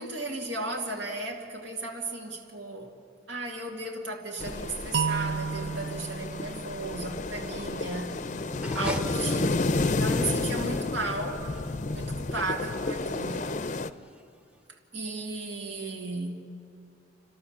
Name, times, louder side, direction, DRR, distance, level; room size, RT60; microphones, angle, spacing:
voice 1, 0.0-2.9 3.3-8.2 8.7-9.6 9.9-11.4 11.9-13.5 14.9-16.4, right 2 dB, 85° right, 0 dB, 2.5 m, -35 dB
sound 1, 4.4-13.9, left 3 dB, 40° left, 0.5 m, -31 dB
sound 2, 4.9-7.8, right 6 dB, 60° right, 0.4 m, -33 dB
sound 3, 8.5-14.6, equal, 5° right, 0.7 m, -42 dB
29.5 x 12.5 x 7.3 m, 2.5 s
head